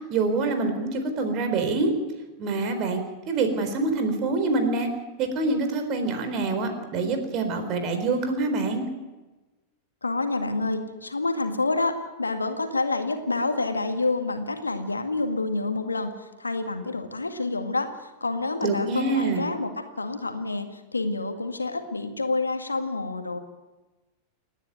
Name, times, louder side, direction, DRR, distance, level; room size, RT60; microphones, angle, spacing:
voice 1, 0.1-1.9 2.4-3.0 3.3-4.9 5.2-8.8 18.6-19.4, right 3 dB, 40° right, 7 dB, 4.2 m, -25 dB
voice 2, 10.0-23.4, left 3 dB, 80° left, 6 dB, 2.0 m, -28 dB
28.5 x 10.5 x 9.5 m, 1.1 s
figure-of-eight pair, 90°, 0 cm